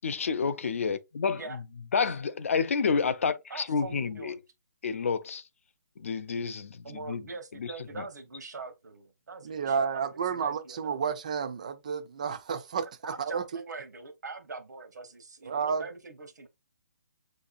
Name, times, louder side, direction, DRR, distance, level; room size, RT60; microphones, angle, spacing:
voice 1, 0.0-1.4 1.9-4.3 4.8-5.4 6.0-7.2 7.6-7.7, left 5 dB, 50° left, 0.4 m, -29 dB
voice 2, 3.5-4.4 6.8-11.0 13.0-16.5, right 4 dB, 80° right, 0.9 m, -43 dB
voice 3, 9.4-12.9 13.2-13.4 15.4-15.8, right 6 dB, 25° right, 0.3 m, -31 dB
6.3 x 2.7 x 2.4 m
hypercardioid pair, 175°, 9 cm